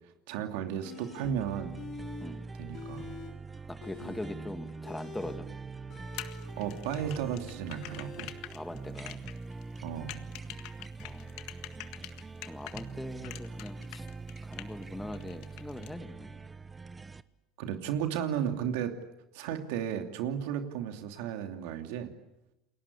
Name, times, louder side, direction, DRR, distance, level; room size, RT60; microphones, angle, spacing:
voice 1, 0.3-1.8 2.6-3.1 4.0-4.1 6.4-8.3 9.8-10.2 17.6-19.0 19.3-22.1, right 9 dB, 80° right, 6 dB, 2.8 m, -34 dB
sound 1, 0.8-1.3 1.7-2.3 2.6-3.3 3.7-8.3, left 5 dB, 50° left, 4.6 m, -47 dB
sound 2, 0.9-17.2, right 4 dB, 15° right, 0.9 m, -43 dB
voice 2, 3.7-5.5 8.5-9.2 11.0-11.4 12.0-12.1 12.5-14.1 14.4-16.4, left 1 dB, 5° left, 8 dB, 2.0 m, -41 dB
sound 3, 6.1-12.9 13.2-14.8 15.1-15.9, left 16 dB, 70° left, 1.7 m, -45 dB
29.5 x 22.0 x 8.5 m, 0.91 s
supercardioid pair, 115°, 0 cm